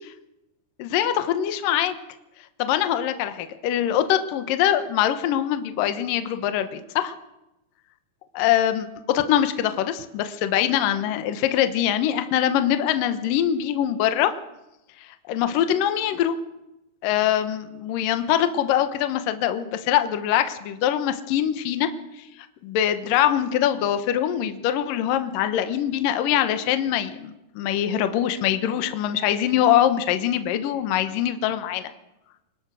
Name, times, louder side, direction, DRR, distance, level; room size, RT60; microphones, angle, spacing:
voice 1, 0.8-2.0 2.6-7.1 8.4-14.3 15.3-16.4 17.0-21.9 22.6-31.9, left 11 dB, 70° left, 9 dB, 2.6 m, -23 dB
24.5 x 19.5 x 6.4 m, 0.91 s
omnidirectional pair, 4.5 m